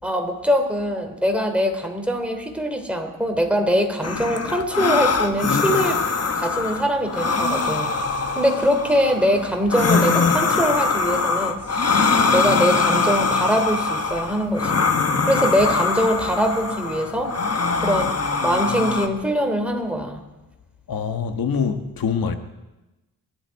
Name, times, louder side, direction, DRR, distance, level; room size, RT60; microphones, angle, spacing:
voice 1, 0.0-6.0 6.3-7.9 8.3-11.6 12.3-14.9 15.3-17.3 17.8-18.1 18.4-20.2, equal, 5° right, 3.1 m, -22 dB
sound 1, 4.0-19.1, left 4 dB, 45° left, 1.4 m, -22 dB
voice 2, 20.9-22.4, left 6 dB, 80° left, 1.4 m, -24 dB
26.0 x 11.5 x 4.7 m
cardioid pair, 65°, 35 cm